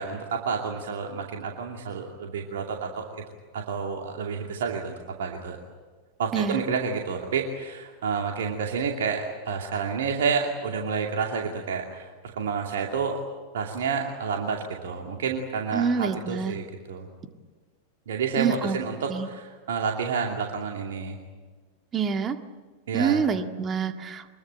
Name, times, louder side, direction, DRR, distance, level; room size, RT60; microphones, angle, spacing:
voice 1, 0.0-3.2 3.5-5.6 6.2-13.2 13.5-17.0 18.1-21.2 22.9-23.2, right 5 dB, 60° right, 1 dB, 2.5 m, -29 dB
voice 2, 15.7-16.6 18.3-18.8 19.1-19.3 21.9-22.4 22.9-24.4, right 6 dB, 25° right, 7 dB, 1.8 m, -26 dB
24.5 x 22.0 x 9.0 m, 1.4 s
figure-of-eight pair, 90°, 0 cm